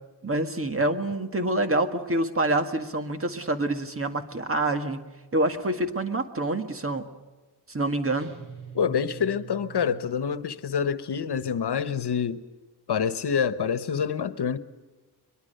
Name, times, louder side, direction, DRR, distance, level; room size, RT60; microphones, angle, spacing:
voice 1, 0.2-5.1 5.3-7.1 7.7-8.3, right 2 dB, 35° right, 1.8 m, -26 dB
sound 1, 8.2-10.8, right 7 dB, 70° right, 4.3 m, -45 dB
voice 2, 8.7-12.4 12.9-14.6, left 7 dB, 80° left, 1.2 m, -27 dB
23.0 x 22.5 x 6.7 m
wide cardioid pair, 150°, 40 cm